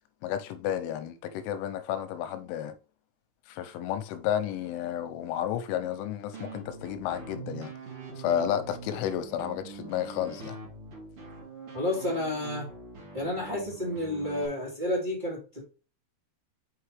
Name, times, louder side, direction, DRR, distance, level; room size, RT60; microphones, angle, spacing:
voice 1, 0.2-2.7 3.5-7.7 8.2-10.6, left 10 dB, 90° left, 3.2 m, -32 dB
sound 1, 6.3-14.5, right 4 dB, 40° right, 2.2 m, -43 dB
voice 2, 11.7-12.7 13.1-15.6, left 1 dB, 15° right, 1.7 m, -31 dB
5.9 x 5.8 x 3.2 m
omnidirectional pair, 5.5 m